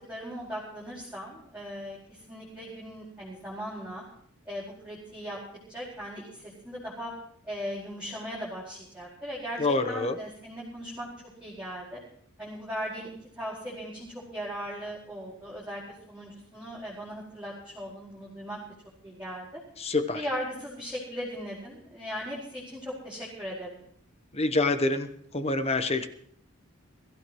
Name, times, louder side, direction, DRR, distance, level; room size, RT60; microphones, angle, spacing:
voice 1, 0.1-4.0 4.4-5.4 5.7-7.1 7.5-11.1 11.4-12.0 12.4-15.8 16.1-18.6 19.0-19.6 20.1-23.8, equal, 5° right, -9 dB, 4.7 m, -38 dB
voice 2, 9.6-10.2 19.8-20.2 24.3-25.1 25.3-26.1, left 2 dB, 30° left, 9 dB, 1.0 m, -26 dB
22.5 x 15.0 x 3.1 m, 0.64 s
head